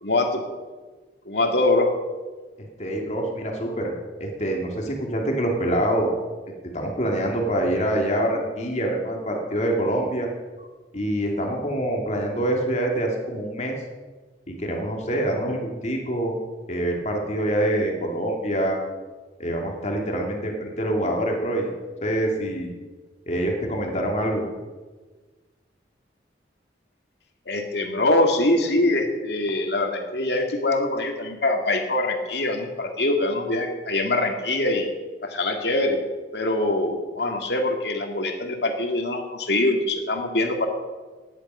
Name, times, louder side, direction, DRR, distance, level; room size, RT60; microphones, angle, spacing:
voice 1, 0.0-0.4 1.3-1.9 27.5-34.9 35.2-36.0 36.3-40.7, left 2 dB, 70° left, 3 dB, 2.2 m, -23 dB
voice 2, 2.8-3.9 4.2-6.1 6.7-10.3 10.9-13.8 14.5-16.3 16.7-18.8 19.4-21.7 22.0-22.7 23.3-24.4, right 1 dB, 40° left, 0 dB, 2.6 m, -25 dB
17.0 x 10.5 x 5.6 m, 1.3 s
head